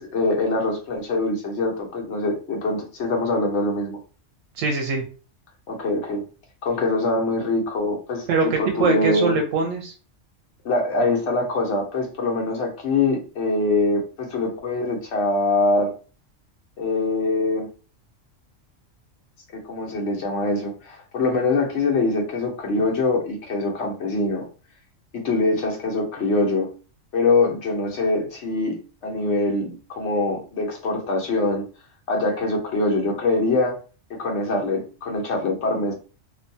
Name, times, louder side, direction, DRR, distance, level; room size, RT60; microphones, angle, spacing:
voice 1, 0.0-4.0 5.7-6.2 6.6-9.3 10.6-15.9 16.8-17.7 19.5-24.5 25.1-26.7 27.1-31.7 32.1-33.8 34.1-35.9, left 2 dB, 65° left, 1 dB, 1.0 m, -23 dB
voice 2, 4.6-5.0 8.3-9.9, right 3 dB, 85° right, 3 dB, 1.0 m, -22 dB
2.6 x 2.2 x 2.6 m, 0.36 s
omnidirectional pair, 1.3 m